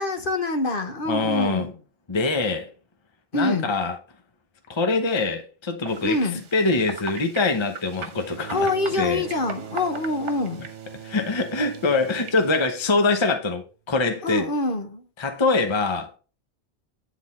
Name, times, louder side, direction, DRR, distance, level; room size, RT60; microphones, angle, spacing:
voice 1, 0.0-1.8 3.3-3.7 6.0-6.5 8.5-10.7 14.2-15.1, left 2 dB, 50° left, 1.2 m, -26 dB
voice 2, 1.1-1.7 2.1-2.7 3.3-3.9 4.7-6.2 6.5-8.7 9.0-9.2 11.0-14.5 15.2-16.1, left 3 dB, 25° left, 0.9 m, -23 dB
sound 1, 5.9-12.7, right 5 dB, 80° right, 1.4 m, -40 dB
Bowed string instrument, 8.1-13.6 14.7-14.8, right 9 dB, 60° right, 0.5 m, -42 dB
9.8 x 4.0 x 4.2 m
omnidirectional pair, 1.2 m